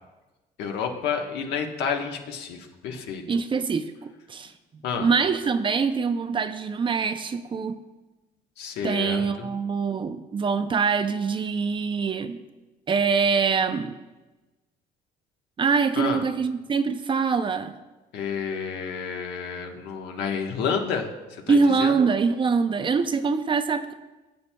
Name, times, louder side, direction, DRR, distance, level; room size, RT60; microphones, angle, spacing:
voice 1, 0.6-3.2 4.8-5.1 8.6-9.5 16.0-16.2 18.1-21.9, left 6 dB, 80° left, 2 dB, 1.2 m, -30 dB
voice 2, 3.3-4.5 5.0-7.8 8.8-12.4 12.9-14.0 15.6-17.8 21.5-23.9, right 5 dB, 30° right, 10 dB, 0.5 m, -24 dB
14.5 x 7.5 x 2.3 m, 1.1 s
cardioid pair, 110°, 17 cm